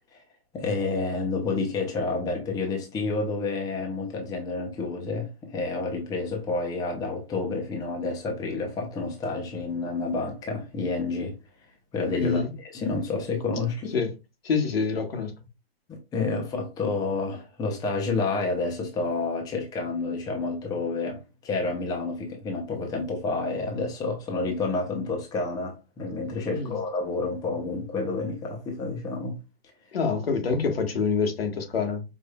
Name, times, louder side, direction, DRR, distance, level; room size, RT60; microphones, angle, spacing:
voice 1, 0.5-11.3 11.9-13.9 15.9-29.4, left 3 dB, 10° left, 0.7 m, -29 dB
voice 2, 12.2-12.5 13.9-14.1 14.4-15.3 26.5-26.8 29.9-32.0, left 5 dB, 75° left, 1.2 m, -26 dB
5.0 x 2.6 x 2.2 m
hypercardioid pair, 130°, 30 cm